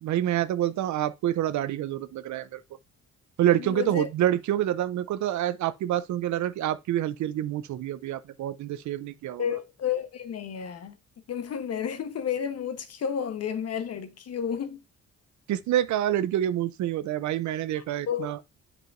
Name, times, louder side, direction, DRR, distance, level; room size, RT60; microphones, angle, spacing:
voice 1, 0.0-2.6 3.4-9.5 15.5-18.4, right 12 dB, 70° right, 0.6 m, -27 dB
voice 2, 3.6-4.1 9.4-11.0 11.3-14.8 17.7-18.3, left 8 dB, 55° left, 1.0 m, -31 dB
7.8 x 4.9 x 2.5 m
cardioid pair, 90°, 30 cm